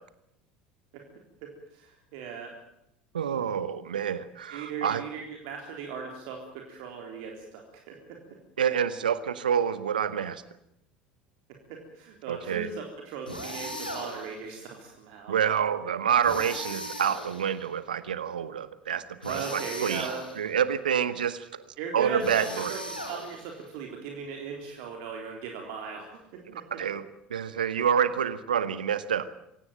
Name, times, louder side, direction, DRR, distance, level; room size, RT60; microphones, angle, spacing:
voice 1, 1.4-2.5 4.5-8.2 11.7-15.3 19.2-20.3 21.8-26.6, right 6 dB, 55° right, 2 dB, 3.8 m, -38 dB
voice 2, 3.1-5.0 8.6-10.4 12.3-12.7 15.3-20.1 20.4-22.7 26.5-27.0 27.3-29.3, right 8 dB, 75° right, 15 dB, 1.1 m, -28 dB
sound 1, 13.3-14.4 16.2-17.7 19.2-20.5 22.2-23.6, equal, 90° left, 3.6 m, -38 dB
24.5 x 17.5 x 9.1 m, 0.81 s
figure-of-eight pair, 70°, 5 cm